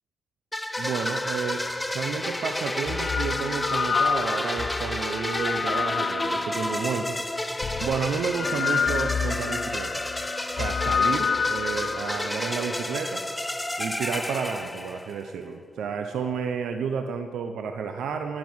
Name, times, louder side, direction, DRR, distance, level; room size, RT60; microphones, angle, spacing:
sound 1, 0.5-15.3, left 1 dB, 10° left, 0.7 m, -31 dB
voice 1, 0.8-1.6 1.9-7.2 7.8-10.0 10.6-13.2 13.8-18.4, right 6 dB, 80° right, 6 dB, 0.7 m, -31 dB
sound 2, 1.5-1.6 2.6-6.8 7.6-12.3, left 6 dB, 50° left, 0.3 m, -29 dB
12.0 x 11.5 x 6.2 m, 2.2 s
cardioid pair, 105°, 0 cm